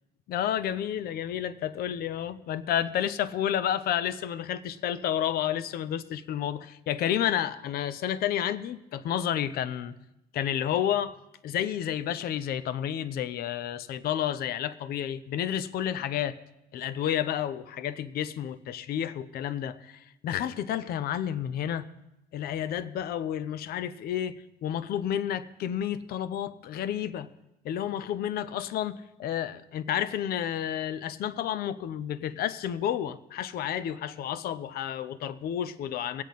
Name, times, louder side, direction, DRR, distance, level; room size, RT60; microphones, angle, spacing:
voice 1, 0.3-9.9 10.3-11.1 11.4-16.4 16.7-21.9 22.3-27.3 27.6-36.2, left 10 dB, 65° left, 0.7 m, -30 dB
22.0 x 8.4 x 4.0 m
cardioid pair, 110°, 17 cm